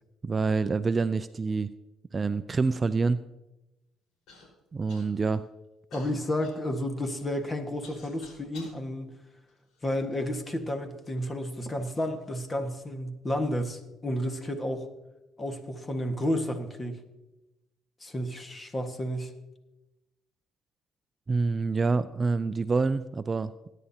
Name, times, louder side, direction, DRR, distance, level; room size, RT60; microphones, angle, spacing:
voice 1, 0.2-1.7 2.1-3.2 4.7-5.4 21.3-23.5, right 4 dB, 30° right, 13 dB, 0.4 m, -26 dB
Human voice / Cough, 4.3-4.5 4.9-5.4 5.9-8.8 9.5-10.3 11.1-11.2 11.9-12.2, left 3 dB, 75° left, 4.7 m, -52 dB
voice 2, 5.9-9.1 9.8-14.9 15.4-17.0 18.0-19.3, left 1 dB, 25° left, 5 dB, 1.6 m, -31 dB
20.0 x 9.9 x 2.9 m, 1.0 s
cardioid pair, 85°, 0 cm